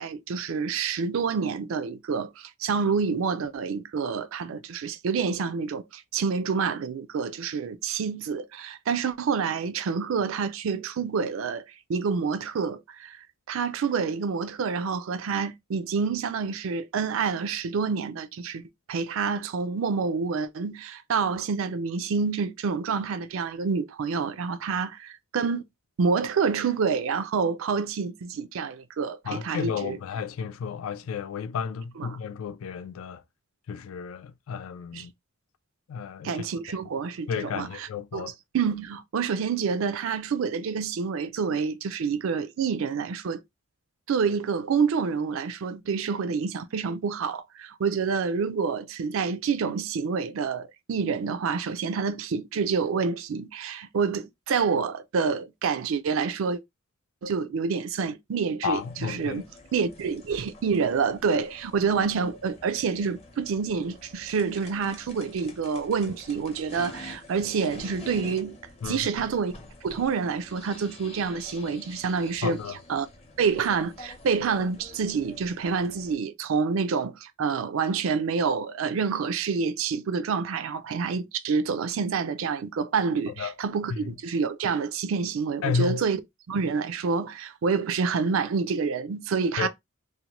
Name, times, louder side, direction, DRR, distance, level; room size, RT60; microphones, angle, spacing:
voice 1, 0.0-13.2 13.5-18.6 18.9-25.6 26.0-30.0 34.9-35.0 36.2-37.3 37.6-37.7 38.1-43.4 44.1-56.6 57.2-59.4 59.7-68.6 68.9-69.5 69.8-72.6 72.9-73.1 73.4-86.2 86.5-89.7, right 5 dB, 70° right, 0.4 m, -28 dB
voice 2, 29.2-33.2 33.7-35.1 35.9-36.9 37.3-38.3 58.6-59.4 68.8-69.1 72.4-72.8 83.3-83.6 83.9-84.1 85.6-86.0 89.6-89.7, left 6 dB, 80° left, 0.3 m, -32 dB
sound 1, 58.7-76.1, left 2 dB, 30° left, 0.7 m, -47 dB
2.7 x 2.1 x 2.9 m
head